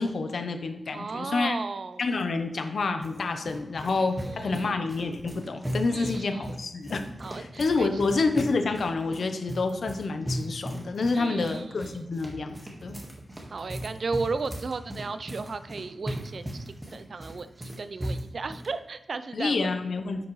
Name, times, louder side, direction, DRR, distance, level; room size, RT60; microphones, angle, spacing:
voice 1, 0.0-1.6 2.0-7.0 7.3-13.0 19.3-20.3, left 3 dB, 75° left, 7 dB, 0.9 m, -28 dB
voice 2, 0.9-2.0 4.2-4.8 5.9-6.4 7.2-8.0 11.1-12.0 13.5-17.5 17.8-19.7, right 4 dB, 65° right, 12 dB, 0.5 m, -35 dB
sound 1, 2.8-18.7, equal, 20° right, 1.7 m, -38 dB
10.0 x 6.2 x 3.2 m, 0.92 s
wide cardioid pair, 90°, 0 cm